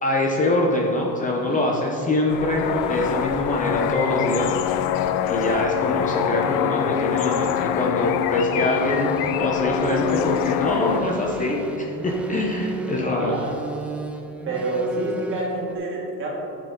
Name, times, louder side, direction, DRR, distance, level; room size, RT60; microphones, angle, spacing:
voice 1, 0.0-4.6 5.3-9.1 9.4-13.3, left 2 dB, 25° left, -1 dB, 0.7 m, -24 dB
sound 1, 0.6-15.7, right 2 dB, 5° right, 0.3 m, -36 dB
sound 2, 2.3-11.0, left 9 dB, 85° left, 0.6 m, -24 dB
voice 2, 13.0-13.5 14.5-16.4, right 2 dB, 35° right, -3 dB, 2.1 m, -28 dB
11.0 x 7.4 x 3.9 m, 2.9 s
cardioid pair, 170°, 34 cm